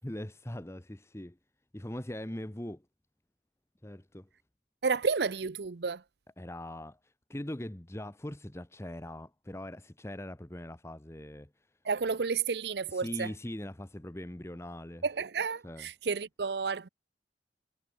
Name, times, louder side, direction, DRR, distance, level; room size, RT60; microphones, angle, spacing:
voice 1, 0.0-1.4 1.7-2.8 3.8-4.3 6.4-11.5 12.9-15.0 15.6-15.9, left 1 dB, 15° left, 1.0 m, -41 dB
voice 2, 4.8-6.0 11.8-13.3 15.0-16.9, right 5 dB, 65° right, 0.6 m, -31 dB
head